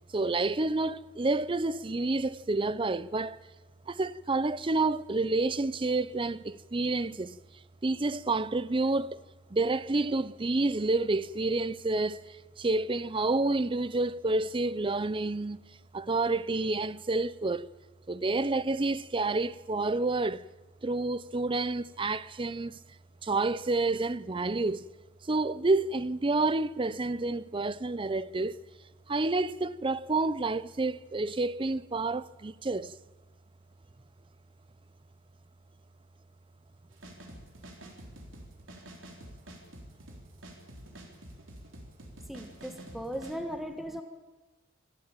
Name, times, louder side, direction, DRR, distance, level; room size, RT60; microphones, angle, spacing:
voice 1, 0.1-3.4 3.9-7.4 7.8-9.2 9.5-15.6 15.9-17.7 18.1-20.5 20.8-22.8 23.2-24.9 25.2-28.6 29.1-32.9, right 2 dB, 25° right, 0.6 m, -29 dB
sound 1, 36.9-43.3, right 1 dB, 70° right, 3.9 m, -48 dB
voice 2, 42.3-44.0, equal, ahead, 1.4 m, -37 dB
25.0 x 13.0 x 9.0 m
head